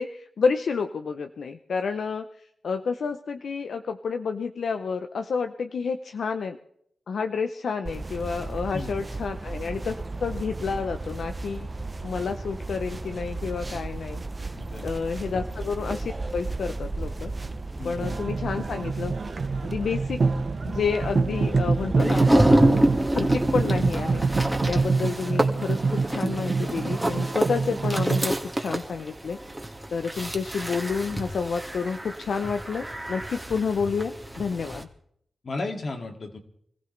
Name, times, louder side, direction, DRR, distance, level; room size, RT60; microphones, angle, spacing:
voice 1, 0.0-2.2 2.6-6.6 7.1-11.7 12.0-14.2 14.8-17.3 17.8-19.1 19.6-20.2 20.6-22.9 23.1-24.2 24.7-29.4 29.9-34.9, left 5 dB, 75° left, 7 dB, 0.7 m, -29 dB
sound 1, 7.9-24.8, right 2 dB, 30° right, 0.8 m, -35 dB
voice 2, 14.5-14.9 17.8-18.2 35.4-36.4, left 2 dB, 60° left, 4 dB, 2.4 m, -34 dB
sound 2, 18.0-28.2, right 4 dB, 60° right, 1.5 m, -26 dB
sound 3, 22.0-34.8, right 1 dB, 10° right, 1.9 m, -27 dB
25.5 x 15.5 x 3.4 m, 0.67 s
cardioid pair, 60°, 0 cm